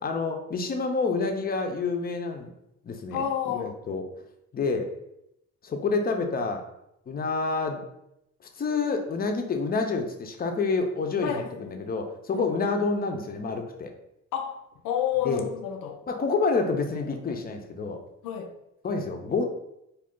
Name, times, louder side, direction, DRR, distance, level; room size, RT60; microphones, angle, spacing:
voice 1, 0.0-2.5 2.8-4.0 4.5-4.9 5.6-6.6 7.1-7.8 8.6-13.9 15.2-15.4 16.1-18.0 18.8-19.5, left 4 dB, 30° left, 4 dB, 0.5 m, -28 dB
voice 2, 3.1-3.7 11.2-11.9 12.3-12.5 14.3-16.0 18.2-18.5, left 9 dB, 90° left, 5 dB, 0.5 m, -30 dB
2.4 x 2.3 x 3.6 m, 0.82 s
cardioid pair, 90°, 30 cm